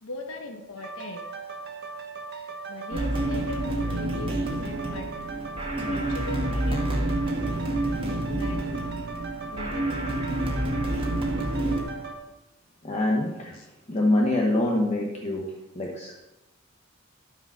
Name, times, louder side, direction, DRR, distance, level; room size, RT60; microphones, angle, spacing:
voice 1, 0.0-1.2 2.3-4.3 4.6-5.1 5.9-7.1 8.3-8.7 9.5-10.2 13.5-13.7, left 2 dB, 75° left, 2 dB, 1.1 m, -40 dB
sound 1, 0.8-12.2, right 4 dB, 50° right, 1.3 m, -38 dB
sound 2, 2.9-11.8, right 1 dB, 25° right, 1.8 m, -28 dB
voice 2, 12.8-13.6 13.9-16.1, left 1 dB, 30° left, -1 dB, 1.1 m, -25 dB
12.5 x 5.1 x 5.6 m, 0.99 s
head